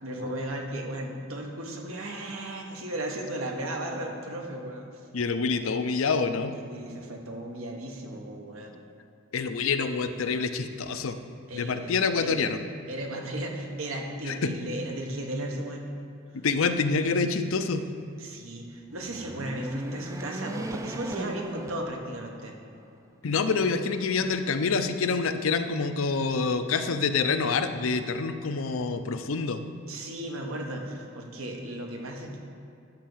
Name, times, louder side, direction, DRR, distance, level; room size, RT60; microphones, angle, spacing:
voice 1, 0.0-4.9 6.5-8.7 11.5-12.4 12.9-15.8 18.2-22.5 29.9-32.4, right 1 dB, 80° right, 1 dB, 1.4 m, -35 dB
voice 2, 5.1-6.6 9.3-11.2 11.5-12.6 14.3-14.5 16.3-17.8 23.2-29.6, left 4 dB, 75° left, 9 dB, 0.6 m, -27 dB
sound 1, 18.9-22.5 23.0-23.1 24.1-24.9, right 1 dB, 15° right, 0.4 m, -38 dB
10.5 x 4.7 x 7.2 m, 2.7 s
head